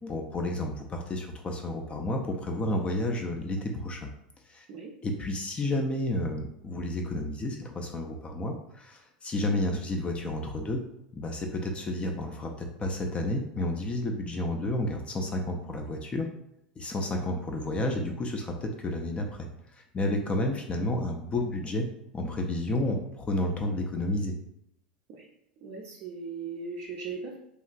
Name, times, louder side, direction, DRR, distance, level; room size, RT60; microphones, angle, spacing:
voice 1, 0.0-4.1 4.5-4.7 5.0-10.8 11.1-16.3 16.8-19.5 19.7-21.9 22.1-24.3, left 1 dB, 25° left, 3 dB, 0.4 m, -31 dB
voice 2, 25.6-27.4, right 4 dB, 45° right, -1 dB, 0.4 m, -38 dB
2.9 x 2.4 x 2.3 m, 0.80 s
figure-of-eight pair, 80°, 5 cm